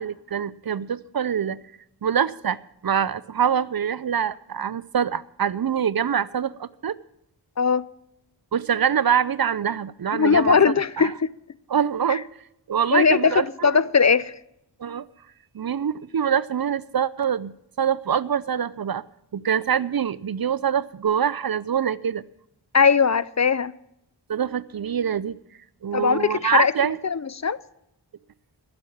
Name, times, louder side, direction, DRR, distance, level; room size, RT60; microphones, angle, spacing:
voice 1, 0.0-1.6 2.0-2.6 2.8-7.0 8.5-11.1 11.7-12.2 12.7-13.7 14.8-15.1 15.5-17.5 17.8-19.0 19.3-22.2 24.3-25.4 25.8-27.0, right 8 dB, 55° right, 0.5 m, -24 dB
voice 2, 10.2-11.3 12.1-12.2 12.9-14.3 22.7-23.7 25.9-26.7 27.0-27.6, left 5 dB, 40° left, 0.5 m, -19 dB
15.0 x 7.9 x 7.1 m
wide cardioid pair, 55°, 42 cm